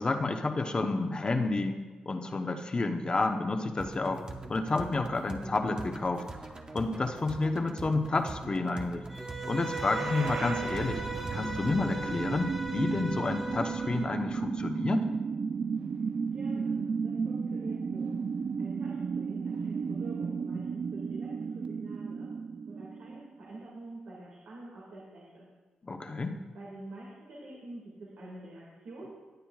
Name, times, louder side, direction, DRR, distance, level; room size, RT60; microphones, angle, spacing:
voice 1, 0.0-1.8 2.1-4.2 4.5-6.2 6.7-9.0 9.4-11.0 11.3-15.1 25.8-26.3, left 3 dB, 35° left, 5 dB, 0.9 m, -30 dB
sound 1, 3.8-11.8, right 3 dB, 30° right, 1.1 m, -43 dB
Bowed string instrument, 9.1-14.1, right 2 dB, 5° right, 1.9 m, -38 dB
sound 2, 9.6-23.5, right 5 dB, 55° right, 0.4 m, -34 dB
voice 2, 16.3-18.1 18.6-22.3 22.7-25.5 26.5-29.1, right 2 dB, 80° right, -5 dB, 2.1 m, -46 dB
17.5 x 9.1 x 2.4 m, 1.3 s
cardioid pair, 65°, 3 cm